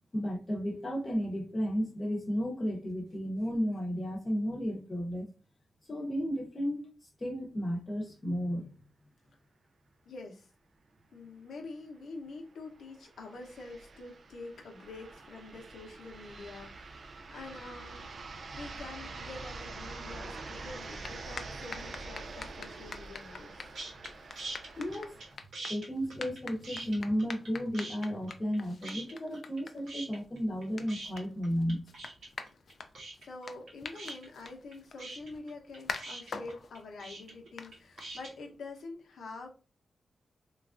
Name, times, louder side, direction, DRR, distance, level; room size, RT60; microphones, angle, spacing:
voice 1, 0.1-5.3 5.9-6.8 7.2-8.7 24.8-25.2 25.7-31.9, equal, 30° left, 0.8 m, -33 dB
voice 2, 10.0-10.5 11.1-18.1 18.5-23.7 33.2-39.5, left 3 dB, 90° left, 0.7 m, -46 dB
sound 1, 11.3-11.4 11.7-11.8 12.6-25.4, right 3 dB, 50° right, 0.3 m, -45 dB
sound 2, 20.8-38.5, left 4 dB, 55° left, 0.4 m, -47 dB
sound 3, 23.7-24.1 24.4-25.3 25.5-27.5 27.7-28.6 28.8-29.6 29.9-38.3, right 2 dB, 70° right, 0.8 m, -43 dB
3.1 x 2.3 x 2.4 m
wide cardioid pair, 135°, 0 cm